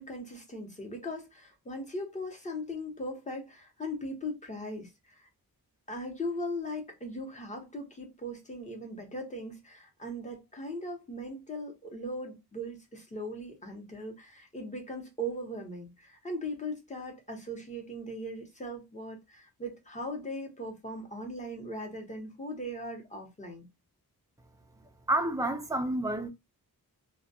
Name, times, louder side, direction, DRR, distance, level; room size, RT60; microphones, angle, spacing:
voice 1, 0.0-5.3 5.9-23.6, equal, 20° left, 0.8 m, -39 dB
voice 2, 25.1-26.3, right 1 dB, 10° right, 0.3 m, -29 dB
2.2 x 2.2 x 2.6 m
wide cardioid pair, 140°, 38 cm